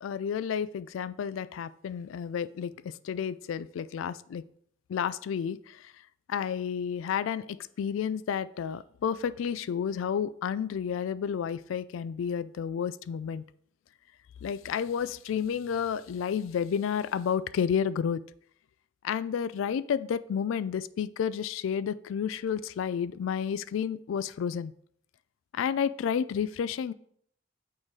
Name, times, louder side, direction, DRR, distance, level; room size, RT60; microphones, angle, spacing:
voice 1, 0.0-4.4 4.9-5.9 6.3-13.4 14.4-18.2 19.0-24.7 25.5-26.9, left 7 dB, 80° left, 17 dB, 0.3 m, -31 dB
6.4 x 3.9 x 4.6 m, 0.64 s
head